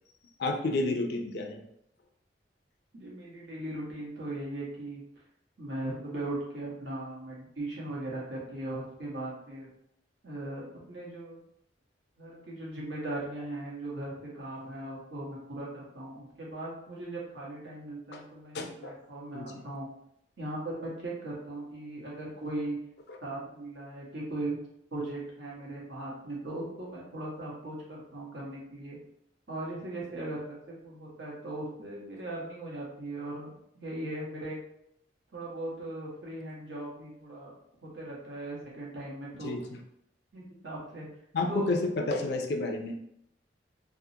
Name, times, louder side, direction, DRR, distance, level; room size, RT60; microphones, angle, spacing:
voice 1, 0.4-1.6 18.1-18.2 18.5-18.9 19.3-19.5 23.1-23.2 39.4-39.8 41.3-43.0, left 2 dB, 60° left, 4 dB, 0.4 m, -31 dB
voice 2, 2.9-5.0 5.6-9.7 10.2-11.4 12.2-19.9 20.4-22.8 23.2-24.6 24.9-29.0 29.5-34.6 35.3-37.5 37.8-39.5 40.3-41.1 41.5-41.7, right 1 dB, 80° right, -5 dB, 1.2 m, -38 dB
3.5 x 2.1 x 2.7 m, 0.76 s
head